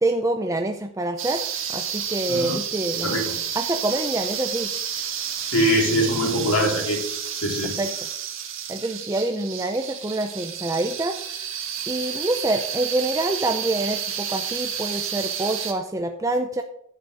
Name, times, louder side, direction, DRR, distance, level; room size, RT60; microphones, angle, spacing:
voice 1, 0.0-1.4 1.7-3.2 3.5-4.7 7.6-7.9 8.7-11.2 11.9-16.6, right 2 dB, 15° right, 5 dB, 0.6 m, -26 dB
sound 1, 1.2-15.7, right 8 dB, 65° right, 2.0 m, -30 dB
voice 2, 3.0-3.4 5.5-7.0 7.4-7.7, equal, 90° left, 0 dB, 3.9 m, -22 dB
11.5 x 6.5 x 6.5 m, 0.69 s
head